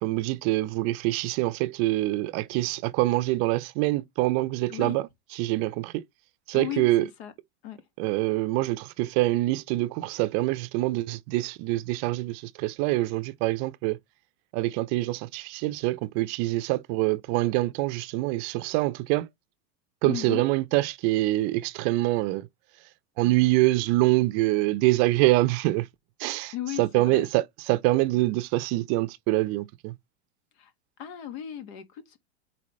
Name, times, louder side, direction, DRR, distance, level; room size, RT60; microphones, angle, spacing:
voice 1, 0.0-5.0 5.3-6.0 6.5-7.0 8.0-14.0 14.5-19.3 20.0-22.5 23.2-25.9 26.2-30.0, right 19 dB, 50° right, 0.6 m, -25 dB
voice 2, 6.5-7.3 7.6-7.8 20.0-20.4 26.5-27.3 30.6-30.7 31.0-32.2, left 12 dB, 65° left, 1.6 m, -36 dB
8.3 x 4.1 x 3.1 m
hypercardioid pair, 100°, 34 cm